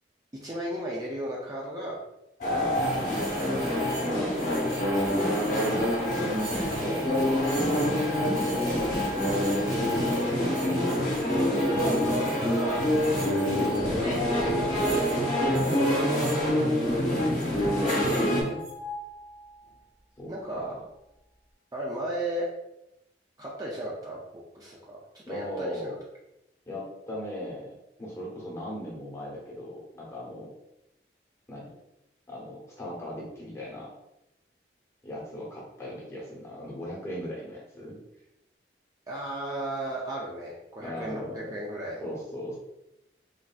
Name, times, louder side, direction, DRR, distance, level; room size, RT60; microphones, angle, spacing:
voice 1, 0.4-2.0 4.0-5.1 9.5-10.8 11.3-12.9 13.9-15.3 15.6-16.8 20.3-20.7 21.7-22.5 23.4-25.7 39.1-42.2, right 1 dB, 20° right, -4 dB, 0.4 m, -35 dB
sound 1, 2.4-18.4, equal, 45° left, 0.9 m, -26 dB
voice 2, 2.5-4.1 5.1-8.9 10.9-11.3 15.6-15.8 16.9-18.7 20.2-20.8 25.3-26.0 26.7-27.7 28.0-30.5 31.5-31.7 32.3-33.9 35.0-38.0 40.8-41.5 42.0-42.6, left 1 dB, 15° left, -4 dB, 0.8 m, -38 dB
sound 2, 2.7-16.4 17.2-19.8, left 2 dB, 75° right, 1.3 m, -37 dB
3.2 x 2.6 x 2.3 m, 0.89 s
head